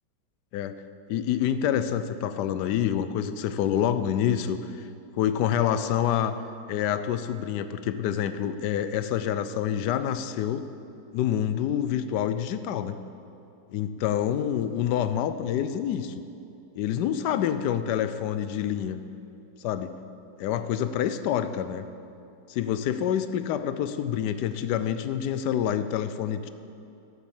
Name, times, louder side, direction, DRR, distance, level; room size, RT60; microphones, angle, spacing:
voice 1, 1.1-4.9 5.1-6.3 6.7-10.7 11.1-13.0 13.7-16.1 16.8-19.0 19.6-19.9 20.4-21.9 22.5-26.5, left 9 dB, 70° left, 11 dB, 1.1 m, -27 dB
10.0 x 8.3 x 7.2 m, 2.8 s
omnidirectional pair, 2.1 m